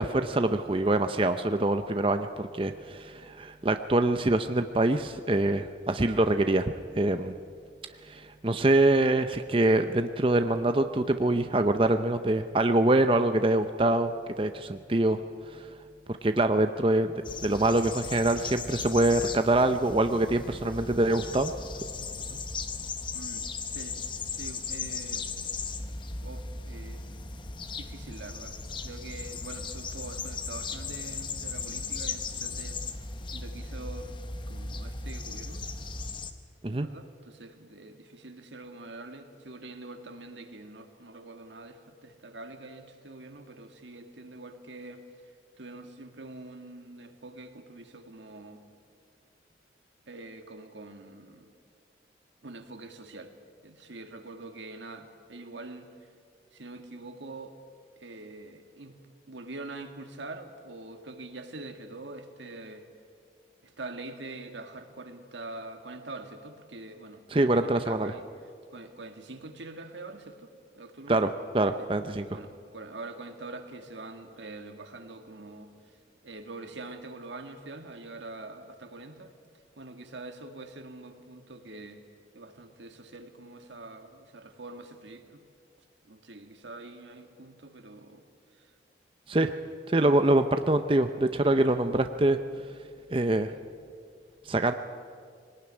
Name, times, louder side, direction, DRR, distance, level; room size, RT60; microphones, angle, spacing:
voice 1, 0.0-7.3 8.0-14.1 14.4-15.2 15.5-15.7 16.2-17.1 17.4-21.5 36.6-36.9 67.3-68.1 71.1-71.3 71.5-72.2 89.3-89.5 89.9-92.4 93.1-93.5 94.5-94.7, right 2 dB, 30° right, 8 dB, 0.6 m, -25 dB
sound 1, 17.2-36.3, left 4 dB, 25° left, 0.9 m, -37 dB
voice 2, 23.1-25.3 26.2-27.0 27.8-32.8 33.3-34.2 34.5-35.6 36.7-45.0 45.6-48.6 50.1-51.5 52.4-53.3 53.6-56.1 56.5-57.6 58.0-59.0 59.3-62.9 63.6-68.3 68.7-71.2 71.8-71.9 72.3-75.8 76.2-79.4 79.8-82.0 82.3-85.4 86.0-88.2 88.5-88.7 90.0-90.3, right 2 dB, 90° right, 6 dB, 2.0 m, -44 dB
21.0 x 18.5 x 9.8 m, 2.2 s
head